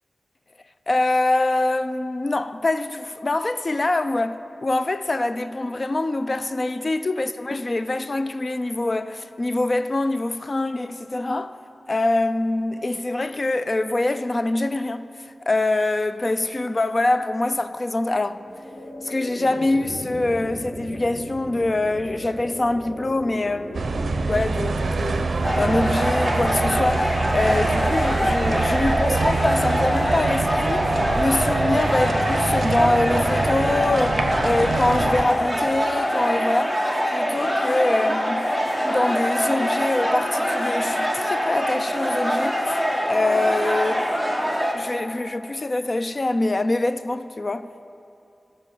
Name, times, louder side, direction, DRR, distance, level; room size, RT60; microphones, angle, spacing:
voice 1, 0.9-11.6 11.9-18.4 19.0-23.9 24.3-38.6 38.8-42.8 43.1-44.1 44.7-47.7, left 2 dB, 35° left, 0.3 m, -24 dB
sound 1, 18.2-29.3, equal, 55° left, 1.8 m, -38 dB
sound 2, 23.7-35.2, right 3 dB, 70° right, 0.5 m, -25 dB
sound 3, 25.4-44.8, equal, 10° left, 1.0 m, -24 dB
12.5 x 5.6 x 7.1 m
wide cardioid pair, 115°, 0 cm